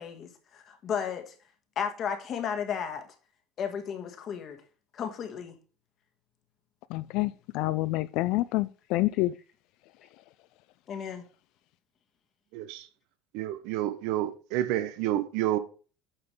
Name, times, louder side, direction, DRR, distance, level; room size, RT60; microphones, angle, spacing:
voice 1, 0.0-1.3 1.7-3.1 3.6-4.6 4.9-5.5 10.9-11.2, left 7 dB, 35° left, 1.7 m, -34 dB
voice 2, 6.9-9.3, left 18 dB, 60° left, 0.4 m, -28 dB
voice 3, 12.5-12.9 13.3-15.6, right 13 dB, 65° right, 1.0 m, -29 dB
8.8 x 5.9 x 3.3 m
cardioid pair, 150°, 0 cm